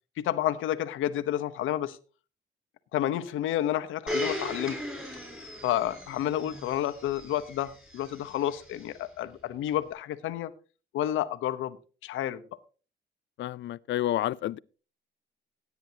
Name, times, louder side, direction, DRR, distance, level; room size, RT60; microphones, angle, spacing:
voice 1, 0.2-2.0 2.9-4.8 5.6-10.5 10.9-11.8 12.0-12.4, left 12 dB, 85° left, 0.9 m, -30 dB
Domestic sounds home sounds, 4.1-8.9 9.7-9.8, equal, 5° right, 5.8 m, -38 dB
voice 2, 13.4-14.6, left 13 dB, 65° left, 0.5 m, -29 dB
16.5 x 9.4 x 2.8 m
cardioid pair, 90°, 20 cm